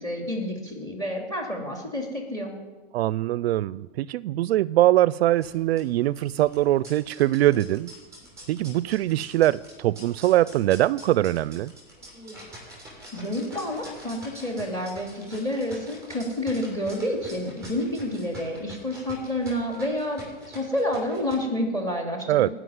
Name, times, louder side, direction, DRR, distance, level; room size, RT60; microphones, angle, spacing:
voice 1, 0.0-2.5 13.1-22.5, left 1 dB, 10° left, 2.6 m, -29 dB
voice 2, 2.9-7.9 8.5-11.7 22.3-22.5, right 14 dB, 65° right, 0.4 m, -22 dB
sound 1, 5.3-21.3, right 1 dB, 10° right, 6.3 m, -46 dB
17.5 x 6.1 x 9.3 m
supercardioid pair, 155°, 33 cm